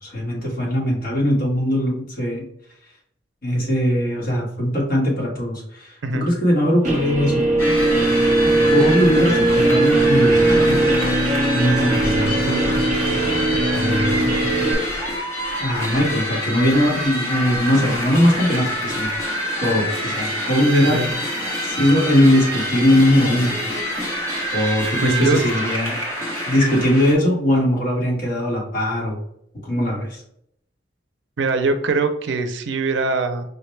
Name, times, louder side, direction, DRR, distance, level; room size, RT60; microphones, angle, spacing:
voice 1, 0.0-2.4 3.4-7.5 8.7-10.8 11.5-12.7 13.7-14.2 15.6-19.1 19.6-21.0 21.6-23.6 24.5-26.0 26.5-29.2 29.6-30.2, left 1 dB, 50° left, -4 dB, 1.5 m, -20 dB
Guitar, 6.8-14.7, right 2 dB, 45° right, 0.8 m, -19 dB
sound 1, 7.6-27.1, equal, 15° left, 0.9 m, -26 dB
voice 2, 20.7-21.1 25.0-25.4 31.4-33.4, right 3 dB, 75° right, 8 dB, 0.5 m, -22 dB
sound 2, 21.9-23.0, right 5 dB, 80° left, 0.5 m, -36 dB
4.9 x 2.2 x 3.1 m, 0.72 s
head